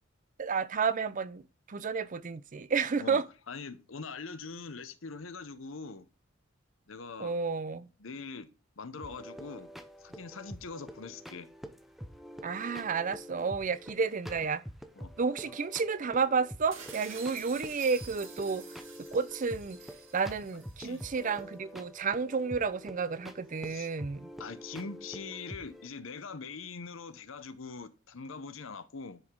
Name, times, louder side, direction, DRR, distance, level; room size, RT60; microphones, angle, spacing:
voice 1, 0.4-1.4 1.7-3.2 7.2-7.9 12.4-14.6 15.2-18.6 19.1-19.8 20.1-24.3, right 5 dB, 40° right, 0.5 m, -31 dB
voice 2, 3.0-6.1 6.9-7.4 8.0-8.5 8.8-9.7 10.0-11.5 15.0-15.1 15.5-15.6 20.8-21.0 23.7-23.9 24.4-29.2, left 4 dB, 65° left, 0.8 m, -43 dB
sound 1, 9.0-25.9, equal, ahead, 0.7 m, -47 dB
sound 2, 16.7-21.4, right 6 dB, 60° right, 2.5 m, -49 dB
10.5 x 4.9 x 3.7 m
head